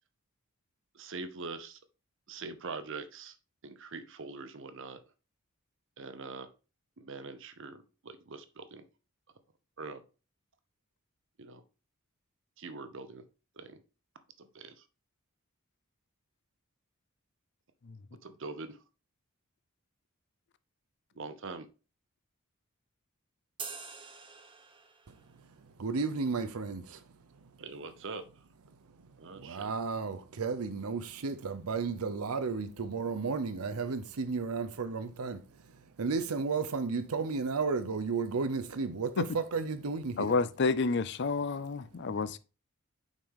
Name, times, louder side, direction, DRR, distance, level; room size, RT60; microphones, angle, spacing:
voice 1, 0.9-1.8 2.3-3.4 3.6-5.0 6.0-6.5 7.0-8.8 9.8-10.0 11.4-11.6 12.6-13.2 13.6-13.8 14.4-14.8 18.2-18.8 21.2-21.7 27.6-28.2 29.2-29.7, right 3 dB, 60° right, 0.9 m, -43 dB
sound 1, 23.6-25.2, right 5 dB, 25° right, 1.1 m, -45 dB
voice 2, 25.8-27.0 29.4-35.4 36.0-40.3, right 4 dB, 85° right, 0.7 m, -33 dB
voice 3, 40.2-42.4, left 4 dB, 50° left, 0.5 m, -29 dB
7.3 x 5.3 x 3.7 m
head